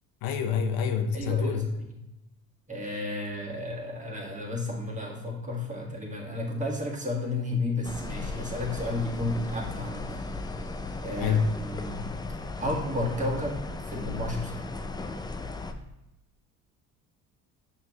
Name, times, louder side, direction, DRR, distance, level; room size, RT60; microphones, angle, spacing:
voice 1, 0.2-1.7 11.2-11.5, left 6 dB, 70° left, 7 dB, 0.7 m, -26 dB
voice 2, 1.1-2.0 2.7-10.2 11.0-12.1 12.6-14.6, left 2 dB, 20° right, -1 dB, 1.7 m, -32 dB
sound 1, 7.8-15.7, left 2 dB, 10° left, 0.4 m, -36 dB
6.2 x 5.7 x 2.9 m, 0.94 s
supercardioid pair, 80°, 37 cm